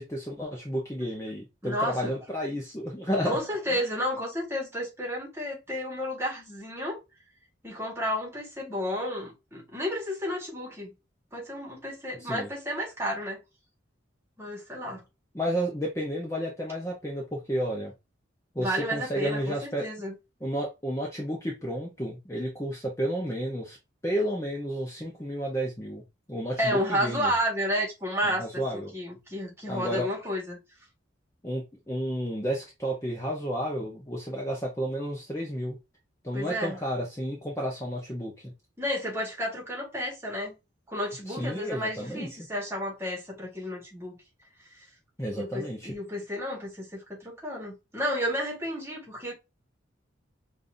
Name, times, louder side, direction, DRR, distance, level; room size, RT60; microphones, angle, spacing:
voice 1, 0.0-3.4 3.7-3.8 12.2-12.5 15.3-17.9 18.5-19.9 20.4-23.8 24.0-26.0 26.3-27.3 28.2-28.9 29.7-30.1 31.4-35.8 36.2-38.5 41.3-42.3 45.2-45.9, equal, 15° left, 0.9 m, -31 dB
voice 2, 1.6-2.2 3.1-7.0 7.6-10.9 11.3-13.4 14.4-15.0 18.6-20.1 26.6-30.6 36.3-36.8 38.8-40.5 40.9-44.2 45.3-49.3, equal, 15° right, 1.6 m, -32 dB
5.4 x 2.6 x 2.6 m
head